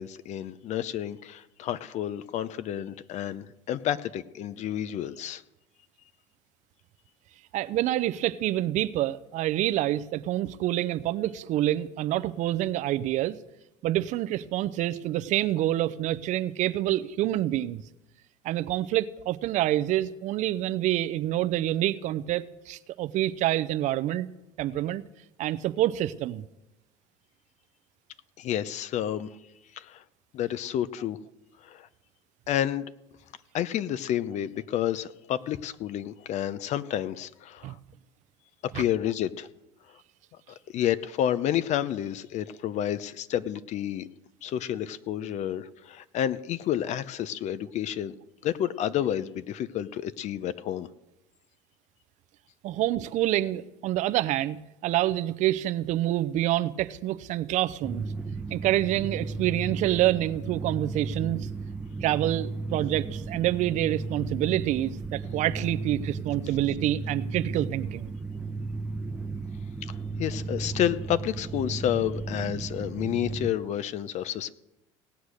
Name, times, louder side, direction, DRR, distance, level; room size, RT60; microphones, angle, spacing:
voice 1, 0.0-5.4 28.4-29.3 29.7-30.0 30.3-31.2 31.6-31.9 32.5-32.8 33.5-37.8 38.6-39.5 40.7-44.1 44.4-48.1 48.4-50.9 69.8-74.5, left 11 dB, 55° left, 0.8 m, -30 dB
voice 2, 7.5-13.4 13.8-17.8 18.4-24.3 24.6-25.0 25.4-26.4 37.6-37.7 38.7-38.8 52.6-54.6 54.8-58.1 58.5-61.5 62.0-68.1, right 14 dB, 60° right, 0.7 m, -27 dB
sound 1, 57.8-73.5, right 3 dB, 10° right, 0.9 m, -35 dB
17.5 x 8.1 x 6.4 m
supercardioid pair, 80°, 14 cm